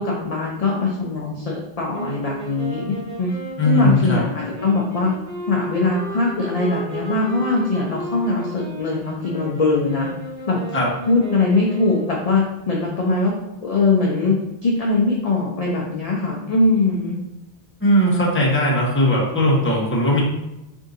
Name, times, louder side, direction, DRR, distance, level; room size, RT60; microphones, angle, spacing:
voice 1, 0.0-3.3 3.6-5.1 5.5-10.1 10.5-10.6 11.1-13.4 13.6-17.2, left 3 dB, 45° left, -2 dB, 0.6 m, -21 dB
sound 1, 1.9-12.3, right 1 dB, 40° right, 1.2 m, -34 dB
voice 2, 3.6-4.2 10.7-10.9 17.8-20.2, equal, 15° left, -5 dB, 0.9 m, -18 dB
3.6 x 2.7 x 3.7 m, 0.91 s
omnidirectional pair, 1.0 m